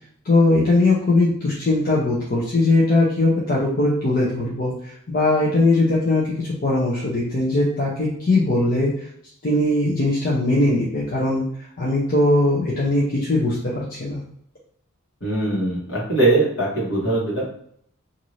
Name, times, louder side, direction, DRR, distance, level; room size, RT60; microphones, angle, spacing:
voice 1, 0.2-8.9 9.4-11.4 11.8-14.2, left 2 dB, 40° left, -6 dB, 0.6 m, -20 dB
voice 2, 15.2-17.5, right 2 dB, 60° left, -4 dB, 1.2 m, -21 dB
2.6 x 2.6 x 3.1 m, 0.66 s
head